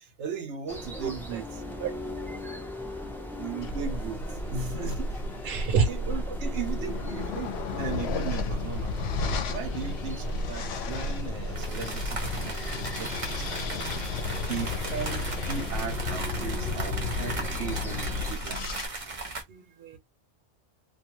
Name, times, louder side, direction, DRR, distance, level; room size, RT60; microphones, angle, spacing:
voice 1, 0.0-1.5 3.4-5.2 5.5-8.9 9.5-13.8 14.5-18.8, right 6 dB, 90° right, 1.0 m, -37 dB
sound 1, 0.7-18.3, equal, 5° left, 0.3 m, -40 dB
voice 2, 1.0-1.4 1.8-1.9 5.4-5.9 19.5-20.0, right 6 dB, 60° right, 0.9 m, -28 dB
sound 2, 3.6-18.9, left 3 dB, 70° left, 0.8 m, -33 dB
sound 3, 11.6-19.4, right 3 dB, 35° right, 0.6 m, -37 dB
2.5 x 2.3 x 2.8 m
omnidirectional pair, 1.2 m